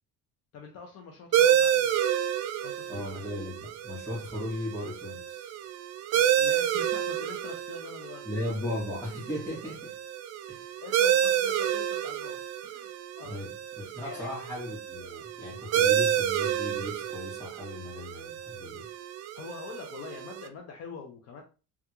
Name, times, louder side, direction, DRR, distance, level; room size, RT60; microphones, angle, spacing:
voice 1, 0.5-1.9 2.6-3.0 6.1-8.3 10.8-12.9 13.2-13.4 14.0-14.4 15.6-15.8 19.4-21.4, left 5 dB, 55° left, 2 dB, 0.6 m, -44 dB
sound 1, 1.3-20.5, right 10 dB, 55° right, 0.4 m, -29 dB
voice 2, 2.9-5.5 8.2-10.0 10.5-10.8 13.2-18.9, left 1 dB, 10° left, -5 dB, 1.8 m, -37 dB
3.4 x 2.3 x 2.9 m, 0.34 s
cardioid pair, 150°, 31 cm